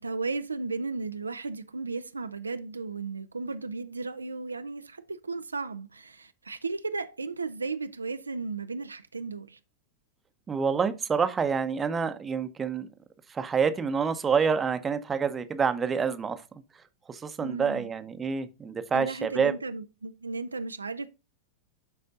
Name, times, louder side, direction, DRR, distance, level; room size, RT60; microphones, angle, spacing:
voice 1, 0.0-9.6 17.4-17.9 18.9-21.1, right 4 dB, 80° right, 0.4 m, -35 dB
voice 2, 10.5-12.9 13.3-16.4 17.1-19.5, right 6 dB, 20° right, 0.8 m, -27 dB
11.5 x 4.2 x 2.5 m
figure-of-eight pair, 90°, 0 cm